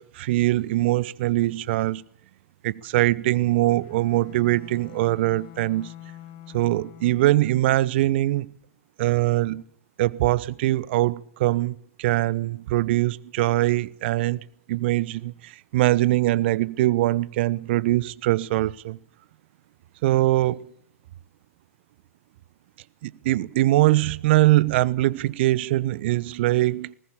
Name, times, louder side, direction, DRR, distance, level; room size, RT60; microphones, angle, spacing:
voice 1, 0.0-2.0 2.6-5.9 6.5-8.5 9.0-9.6 10.0-14.4 14.7-19.0 20.0-20.7 23.0-26.9, right 16 dB, 50° right, 0.9 m, -22 dB
Bowed string instrument, 3.7-7.6, left 12 dB, 45° left, 1.8 m, -46 dB
20.0 x 19.0 x 7.1 m
figure-of-eight pair, 110°, 8 cm